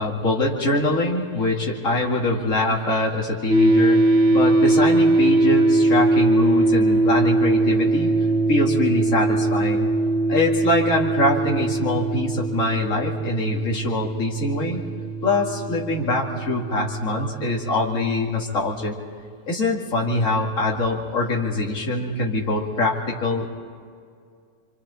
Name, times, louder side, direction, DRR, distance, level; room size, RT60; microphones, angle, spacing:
voice 1, 0.0-4.0 4.3-8.1 8.5-9.9 10.3-14.8 15.2-19.0 19.5-23.5, left 2 dB, 50° left, -2 dB, 2.8 m, -23 dB
sound 1, 3.5-18.7, right 2 dB, 45° right, 1.9 m, -21 dB
29.5 x 26.0 x 4.3 m, 2.2 s
omnidirectional pair, 1.7 m